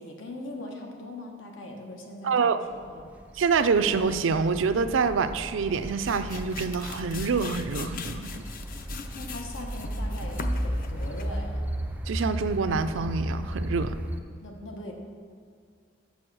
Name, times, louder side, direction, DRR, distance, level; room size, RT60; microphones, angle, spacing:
voice 1, 0.0-3.1 9.1-11.7 14.4-14.9, left 1 dB, 85° left, 2 dB, 1.2 m, -41 dB
voice 2, 2.2-2.6 3.4-8.3 12.1-14.0, right 5 dB, 90° right, 11 dB, 0.4 m, -26 dB
sound 1, 2.9-14.2, equal, 10° right, 0.4 m, -34 dB
sound 2, 5.6-11.5, left 5 dB, 45° left, 0.5 m, -41 dB
6.9 x 6.3 x 6.1 m, 2.2 s
head